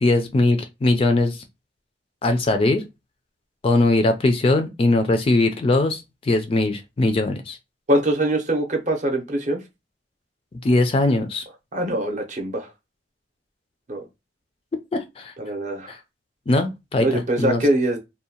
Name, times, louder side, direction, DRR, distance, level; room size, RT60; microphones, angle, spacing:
voice 1, 0.0-1.4 2.2-2.8 3.6-7.6 10.6-11.5 14.9-15.3 15.9-16.0 16.5-17.6, left 2 dB, 30° left, 0.3 m, -20 dB
voice 2, 7.9-9.6 11.7-12.7 13.9-14.0 15.4-15.9 17.0-18.0, right 1 dB, 40° right, 0.6 m, -23 dB
2.6 x 2.1 x 2.8 m
head